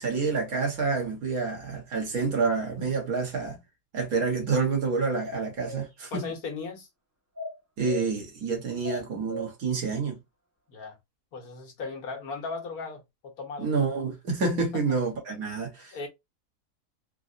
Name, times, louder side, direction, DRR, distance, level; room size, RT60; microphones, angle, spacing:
voice 1, 0.0-3.6 3.9-6.3 7.8-10.2 13.6-15.9, right 4 dB, 65° right, 1.6 m, -28 dB
sound 1, 5.2-5.8 7.4-8.0 8.8-9.5, equal, 10° right, 1.0 m, -37 dB
voice 2, 6.1-6.9 10.7-11.0 11.3-13.7 14.7-14.8 15.9-16.1, left 4 dB, 70° left, 1.4 m, -37 dB
3.9 x 2.1 x 2.5 m
omnidirectional pair, 1.7 m